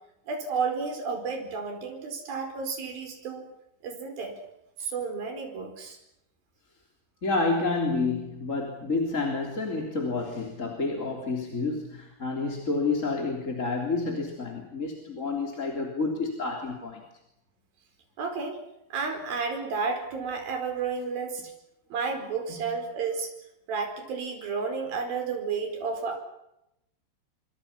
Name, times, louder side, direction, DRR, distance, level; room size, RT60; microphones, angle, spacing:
voice 1, 0.3-3.5 3.8-4.4 4.8-6.0 18.2-18.6 18.9-21.4 21.9-23.3 23.7-26.2, right 5 dB, 55° right, 5 dB, 6.4 m, -31 dB
voice 2, 7.2-17.0 22.6-22.7, left 3 dB, 20° left, 1 dB, 3.1 m, -29 dB
27.5 x 25.5 x 5.8 m, 0.83 s
omnidirectional pair, 5.2 m